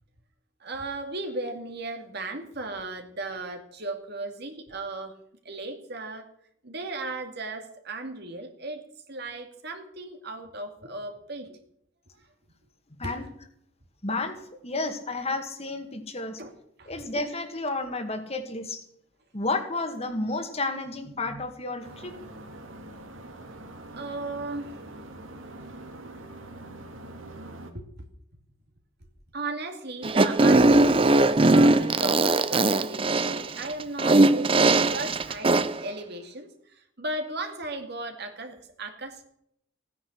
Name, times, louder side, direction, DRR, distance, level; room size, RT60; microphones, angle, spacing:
voice 1, 0.6-5.1 5.4-6.3 6.6-11.6 12.1-12.2 13.0-13.2 16.4-16.5 16.8-16.9 23.9-24.8 27.7-27.8 29.3-39.2, right 2 dB, 55° right, 5 dB, 2.3 m, -36 dB
voice 2, 14.0-14.4 14.6-16.4 16.9-18.8 19.3-22.1, left 2 dB, 30° left, 7 dB, 2.1 m, -31 dB
sound 1, 21.8-27.7, right 1 dB, 80° right, 2.3 m, -44 dB
Fart, 30.0-35.8, right 2 dB, 25° right, 0.6 m, -20 dB
16.5 x 9.8 x 6.3 m, 0.72 s
head